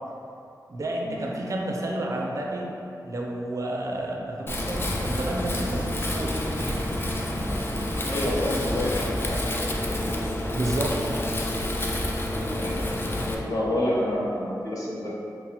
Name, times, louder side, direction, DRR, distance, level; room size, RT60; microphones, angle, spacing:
voice 1, 0.7-2.7 3.0-6.9 10.5-11.1, right 1 dB, 50° right, -1 dB, 0.4 m, -30 dB
Wind, 4.5-13.3, left 1 dB, 30° left, 0.4 m, -28 dB
voice 2, 8.1-9.4 12.5-12.8 13.3-15.2, left 1 dB, 55° left, -6 dB, 0.8 m, -28 dB
5.5 x 2.0 x 2.8 m, 2.7 s
wide cardioid pair, 120°, 7 cm